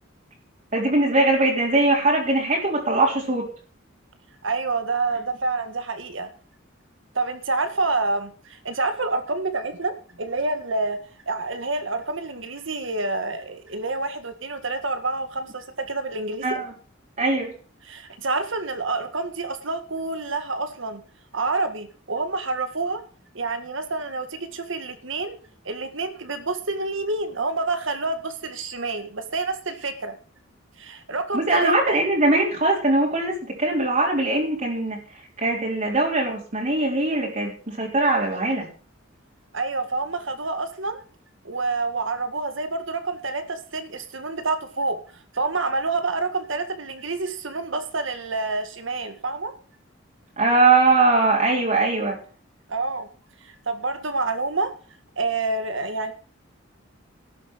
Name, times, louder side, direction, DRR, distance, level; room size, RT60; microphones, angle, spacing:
voice 1, 0.7-3.5 16.4-16.6 17.2-17.5 31.3-35.0 35.4-38.7 50.4-52.2, right 2 dB, 40° right, -3 dB, 3.8 m, -21 dB
voice 2, 4.4-6.3 7.1-11.0 11.3-16.6 17.8-21.0 21.3-23.0 23.3-25.4 25.7-30.2 30.8-32.0 39.5-41.0 41.4-45.0 45.3-49.5 52.7-53.1 53.4-54.7 55.2-56.1, right 3 dB, 70° right, 9 dB, 1.9 m, -28 dB
12.5 x 7.6 x 7.7 m, 0.40 s
head